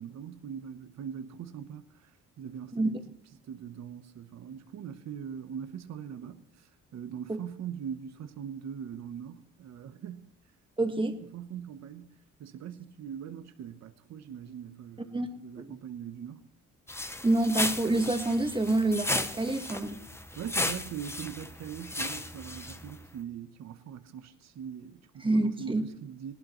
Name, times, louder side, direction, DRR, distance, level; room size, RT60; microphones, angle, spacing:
voice 1, 0.0-1.8 2.4-3.0 3.5-6.4 6.9-10.3 11.0-12.1 12.4-16.4 20.4-25.7 26.0-26.3, right 8 dB, 60° right, 0.9 m, -41 dB
voice 2, 10.8-11.2 15.1-15.3 15.6-15.7 17.2-20.0 25.2-25.8, right 2 dB, 15° right, 1.5 m, -27 dB
sound 1, 16.9-23.1, left 2 dB, 10° left, 0.7 m, -35 dB
18.5 x 12.0 x 3.1 m
cardioid pair, 90°, 30 cm